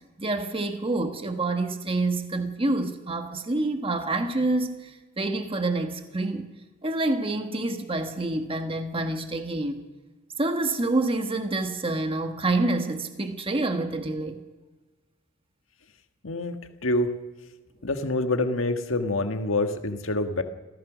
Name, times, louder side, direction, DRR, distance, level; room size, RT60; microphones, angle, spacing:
voice 1, 0.2-6.5 6.8-9.8 10.4-14.4, right 2 dB, 30° right, 1.3 m, -27 dB
voice 2, 16.2-16.5 16.8-17.1 17.8-20.4, left 2 dB, 85° left, 1.6 m, -26 dB
27.0 x 16.0 x 6.3 m
head